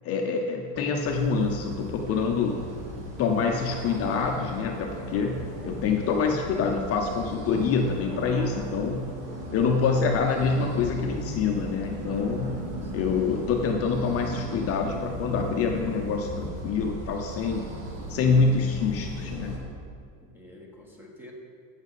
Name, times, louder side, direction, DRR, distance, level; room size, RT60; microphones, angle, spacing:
voice 1, 0.0-2.7 3.2-9.1 9.5-12.6 12.9-17.7 18.1-19.6, left 5 dB, 40° left, 2 dB, 0.7 m, -26 dB
sound 1, 1.0-19.6, right 1 dB, 80° right, 2.0 m, -37 dB
voice 2, 12.6-13.4 20.3-21.3, left 1 dB, 5° right, 0 dB, 1.1 m, -48 dB
8.7 x 7.0 x 4.1 m, 2.2 s
supercardioid pair, 130°, 38 cm